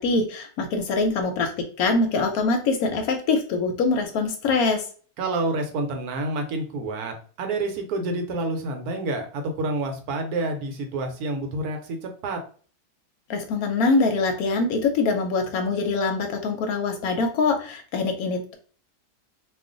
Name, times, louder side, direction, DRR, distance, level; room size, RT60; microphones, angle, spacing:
voice 1, 0.0-4.8 13.3-18.5, left 3 dB, 70° left, 5 dB, 1.0 m, -24 dB
voice 2, 5.2-12.4, right 2 dB, 70° right, 4 dB, 1.1 m, -28 dB
2.4 x 2.4 x 3.7 m, 0.42 s
omnidirectional pair, 1.8 m